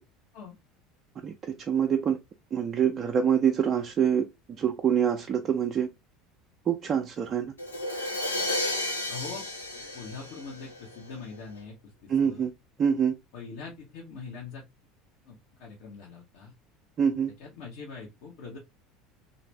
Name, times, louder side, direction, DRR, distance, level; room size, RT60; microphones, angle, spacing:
voice 1, 1.6-2.2 2.5-4.3 4.6-5.9 6.7-7.5 12.1-12.5 12.8-13.1 17.0-17.3, right 8 dB, 35° right, 0.5 m, -25 dB
Crash cymbal, 7.6-11.3, left 1 dB, 80° left, 0.9 m, -32 dB
voice 2, 9.1-9.4 9.9-12.5 13.3-14.6 15.3-16.5 17.4-18.6, left 5 dB, 55° left, 1.1 m, -43 dB
3.3 x 2.7 x 3.1 m
figure-of-eight pair, 70°, 0 cm